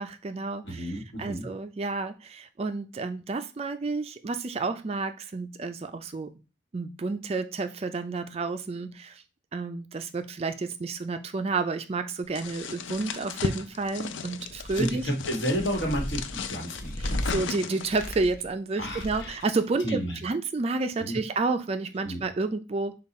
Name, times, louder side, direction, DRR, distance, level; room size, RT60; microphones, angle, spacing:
voice 1, 0.0-6.3 6.7-9.2 9.5-15.1 17.0-23.0, right 3 dB, 30° right, 9 dB, 0.3 m, -30 dB
voice 2, 0.6-1.5 14.7-16.2 16.5-17.2 18.8-19.4 19.8-20.2 21.0-21.2 22.0-22.2, equal, 65° left, 1 dB, 1.4 m, -31 dB
sound 1, 12.3-18.1, left 6 dB, 85° left, 0.4 m, -36 dB
sound 2, 14.4-15.1 15.5-17.4 17.8-18.5 18.8-19.5, equal, 45° left, 0.7 m, -35 dB
5.2 x 2.3 x 4.1 m, 0.32 s
head